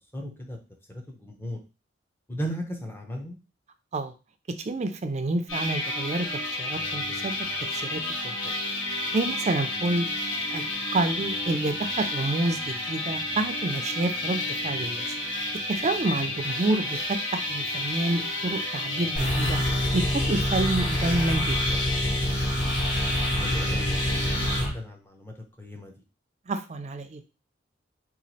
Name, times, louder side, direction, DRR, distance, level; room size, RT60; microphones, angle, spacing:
voice 1, 0.1-0.6 0.9-1.6 2.3-3.4 16.3-16.4 23.4-25.9, equal, 10° left, 2 dB, 0.7 m, -36 dB
voice 2, 4.6-6.3 6.6-7.4 7.7-8.5 8.9-10.1 10.5-10.6 10.9-15.1 15.7-19.6 19.9-21.6 26.5-27.2, right 2 dB, 35° right, 8 dB, 0.4 m, -28 dB
sound 1, 5.5-24.6, left 1 dB, 80° left, 1.6 m, -31 dB
sound 2, 19.2-24.7, equal, 35° left, 1.4 m, -27 dB
3.0 x 2.4 x 4.0 m, 0.31 s
head